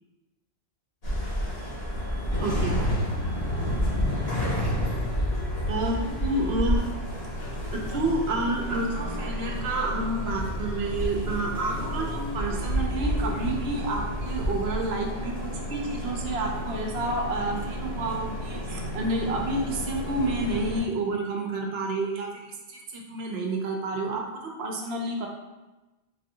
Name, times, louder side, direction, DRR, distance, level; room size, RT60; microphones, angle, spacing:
sound 1, 1.0-20.8, equal, 60° left, 1.3 m, -30 dB
voice 1, 2.4-2.8 5.7-6.8 7.7-15.3 15.7-22.3 22.7-24.2 24.6-25.3, right 2 dB, 65° right, 0 dB, 0.8 m, -29 dB
4.0 x 2.6 x 2.7 m, 1.1 s
omnidirectional pair, 1.2 m